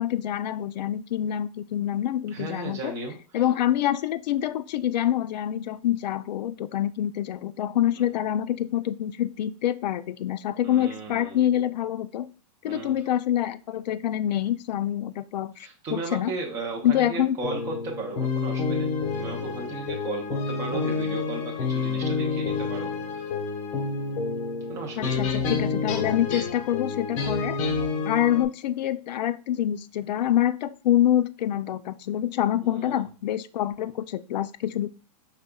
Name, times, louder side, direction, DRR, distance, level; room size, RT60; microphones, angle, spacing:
voice 1, 0.0-2.9 3.3-12.3 12.6-16.3 16.8-17.4 25.0-27.6 28.0-34.9, left 11 dB, 85° left, 13 dB, 0.4 m, -26 dB
voice 2, 2.3-3.4 8.0-8.1 10.6-11.4 12.6-12.9 15.6-23.3 24.7-25.3 32.6-33.0, right 3 dB, 15° right, 1 dB, 0.6 m, -36 dB
sound 1, 17.4-28.5, left 4 dB, 50° left, 1.1 m, -29 dB
5.0 x 3.5 x 2.2 m, 0.38 s
supercardioid pair, 175°, 21 cm